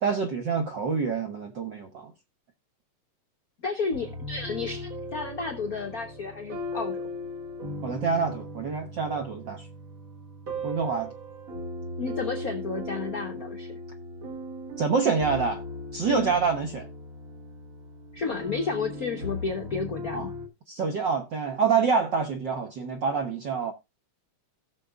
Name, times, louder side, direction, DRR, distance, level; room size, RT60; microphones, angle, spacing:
voice 1, 0.0-2.1 7.8-9.7 10.6-11.1 14.8-15.6 15.9-16.9 20.1-20.3 20.7-23.7, right 5 dB, 65° right, 1.1 m, -27 dB
voice 2, 3.6-7.0 12.0-13.8 16.0-16.3 18.1-20.3, left 4 dB, 80° left, 0.8 m, -32 dB
sound 1, 3.9-20.5, left 1 dB, 40° right, 1.2 m, -38 dB
17.0 x 6.5 x 2.4 m
omnidirectional pair, 3.3 m